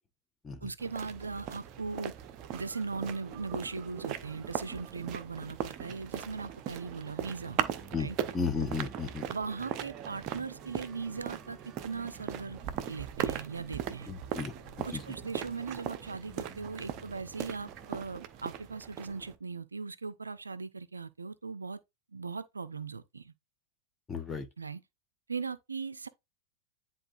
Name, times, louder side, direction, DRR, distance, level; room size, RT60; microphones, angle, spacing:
voice 1, 0.6-2.1 2.5-7.6 8.0-8.2 9.3-12.6 12.9-14.1 14.8-21.8 22.1-23.3 24.6-24.8 25.3-26.1, right 4 dB, 75° right, 0.5 m, -39 dB
sound 1, 0.8-19.4, right 10 dB, 40° right, 0.8 m, -39 dB
sound 2, 6.7-18.0, right 1 dB, 15° right, 3.3 m, -55 dB
voice 2, 7.9-9.2 14.1-15.0 24.1-24.5, left 5 dB, 15° left, 1.2 m, -34 dB
10.0 x 3.9 x 2.5 m
figure-of-eight pair, 90°, 0 cm